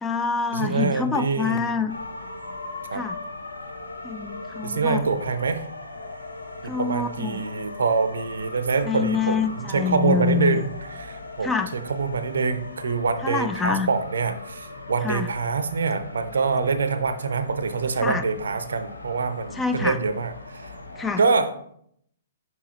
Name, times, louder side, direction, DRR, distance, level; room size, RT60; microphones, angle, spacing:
voice 1, 0.0-1.9 2.9-3.2 4.0-5.0 6.6-7.4 8.9-10.6 11.4-11.7 13.2-13.9 15.0-15.3 18.0-18.2 19.6-20.0 21.0-21.2, left 5 dB, 10° left, 9 dB, 0.3 m, -26 dB
voice 2, 0.5-1.7 2.9-3.0 4.6-5.6 6.6-20.7 21.2-21.5, right 4 dB, 65° right, 11 dB, 0.5 m, -25 dB
sound 1, 1.9-21.1, left 2 dB, 80° left, 0.7 m, -39 dB
6.0 x 5.6 x 2.8 m, 0.69 s
figure-of-eight pair, 120°, 0 cm